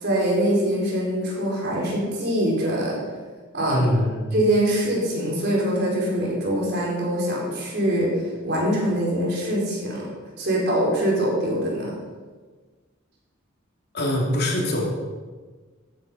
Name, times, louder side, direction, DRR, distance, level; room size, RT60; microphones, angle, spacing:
voice 1, 0.0-3.0 3.5-3.9 4.3-8.1 8.4-10.1 10.4-11.9, right 1 dB, 55° right, -4 dB, 4.5 m, -23 dB
voice 2, 3.7-4.2 13.9-14.9, left 1 dB, 55° left, -2 dB, 2.9 m, -23 dB
14.0 x 9.0 x 5.6 m, 1.4 s
head